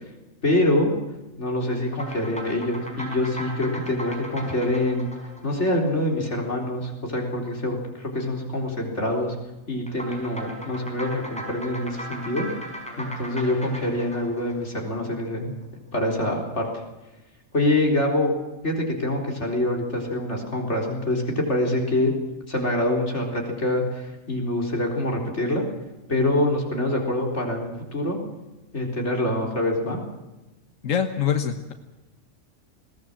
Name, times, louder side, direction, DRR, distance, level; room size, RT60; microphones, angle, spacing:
voice 1, 0.4-0.9 1.4-5.1 5.4-9.4 9.7-12.5 13.0-15.5 15.9-16.8 17.5-18.3 18.6-22.1 22.5-25.6 26.1-28.2 28.7-30.0, left 1 dB, 60° left, 1 dB, 4.4 m, -25 dB
sound 1, 1.9-6.5 9.9-15.3, equal, 5° left, 4.9 m, -38 dB
voice 2, 30.8-31.7, left 8 dB, 80° left, 6 dB, 1.6 m, -24 dB
21.5 x 17.5 x 7.5 m, 1.1 s
omnidirectional pair, 1.3 m